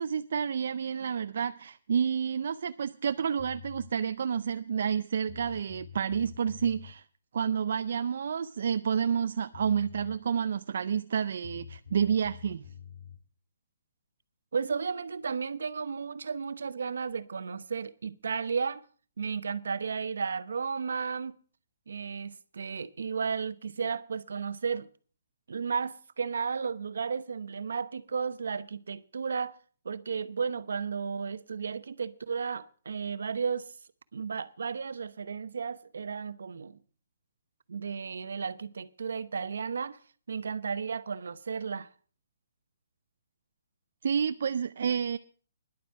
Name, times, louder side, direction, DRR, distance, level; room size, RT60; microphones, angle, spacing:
voice 1, 0.0-7.0 7.3-12.7 44.0-45.2, right 7 dB, 65° right, 0.5 m, -29 dB
sound 1, 3.4-3.9 4.9-5.0 5.3-6.9 9.2-9.3 9.5-10.2 11.4-13.2, left 7 dB, 80° left, 1.9 m, -47 dB
voice 2, 14.5-18.8 19.2-21.4 21.9-24.9 25.5-29.6 29.8-33.7 34.1-36.8 37.7-40.0 40.3-41.9, right 5 dB, 80° right, 0.9 m, -33 dB
11.0 x 8.0 x 7.5 m
hypercardioid pair, 160°, 0 cm